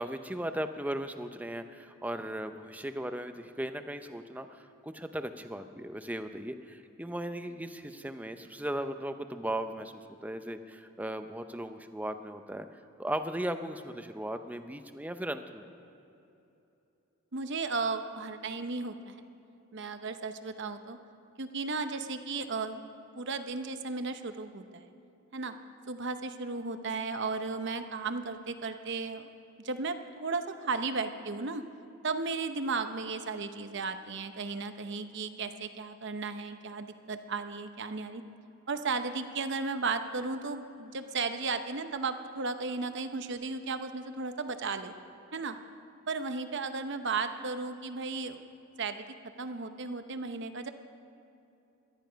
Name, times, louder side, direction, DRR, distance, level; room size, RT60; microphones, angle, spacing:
voice 1, 0.0-12.7 13.0-15.7, right 1 dB, 5° right, 8 dB, 0.6 m, -37 dB
voice 2, 17.3-19.3 19.7-21.0 21.4-22.8 23.1-24.9 25.3-25.5 25.9-29.3 29.6-31.6 32.0-38.2 38.7-44.9 45.3-45.6 46.1-48.5 48.8-49.0 49.4-50.7, right 4 dB, 55° right, 9 dB, 0.8 m, -35 dB
18.0 x 13.0 x 5.2 m, 2.8 s
head